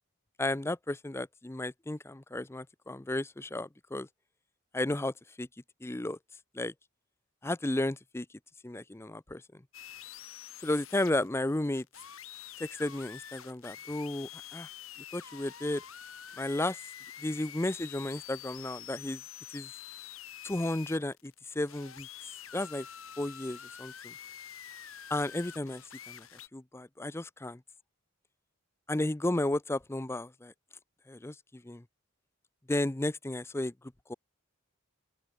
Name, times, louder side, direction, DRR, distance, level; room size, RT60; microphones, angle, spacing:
voice 1, 0.4-4.1 4.7-5.5 5.8-6.2 6.5-6.7 7.4-8.3 8.6-9.6 10.6-11.9 12.6-14.7 15.1-15.8 16.4-16.8 17.2-19.2 19.5-19.7 20.4-22.1 22.5-22.9 23.2-24.1 25.1-26.3 26.5-27.6 28.9-30.5 31.1-31.8 32.7-33.7 34.1-34.2, left 1 dB, 10° left, 0.5 m, -33 dB
sound 1, 9.7-26.5, left 10 dB, 75° left, 2.8 m, -47 dB
open air
head